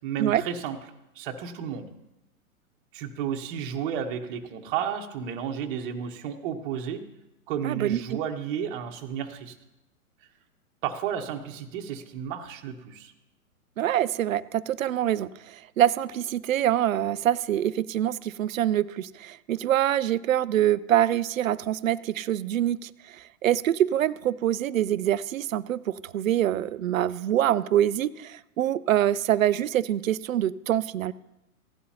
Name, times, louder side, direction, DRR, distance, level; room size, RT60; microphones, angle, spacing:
voice 1, 0.0-0.8 1.1-1.9 2.9-7.0 7.5-9.6 10.8-13.1, right 8 dB, 35° right, 5 dB, 1.2 m, -32 dB
voice 2, 7.6-8.0 13.8-23.2 23.4-31.1, right 12 dB, 65° right, 17 dB, 0.5 m, -25 dB
16.0 x 11.0 x 2.8 m, 0.90 s
figure-of-eight pair, 115°, 44 cm